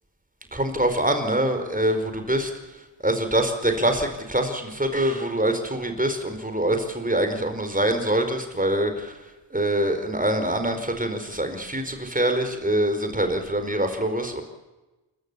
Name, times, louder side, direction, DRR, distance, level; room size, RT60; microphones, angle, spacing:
voice 1, 0.5-2.5 3.0-9.2 9.5-14.4, right 1 dB, 15° right, 6 dB, 4.8 m, -24 dB
29.5 x 13.5 x 8.8 m, 1.1 s
cardioid pair, 50°, 49 cm